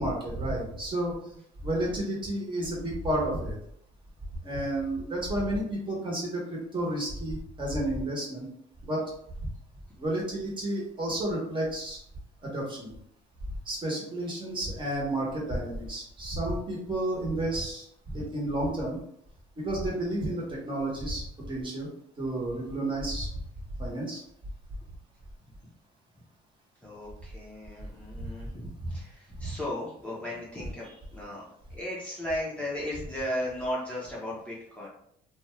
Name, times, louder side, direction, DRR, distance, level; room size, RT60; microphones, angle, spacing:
voice 1, 0.0-3.6 4.4-8.5 8.8-9.0 9.4-9.5 10.0-12.0 12.4-12.9 13.6-19.0 19.6-21.9 22.2-23.3 23.8-24.2 28.2-28.3 28.8-29.0 29.4-29.5, right 1 dB, 30° right, -3 dB, 1.1 m, -31 dB
voice 2, 26.8-31.4 31.7-34.9, left 1 dB, 5° left, -6 dB, 0.7 m, -36 dB
2.6 x 2.2 x 3.1 m, 0.71 s
cardioid pair, 110°, 17 cm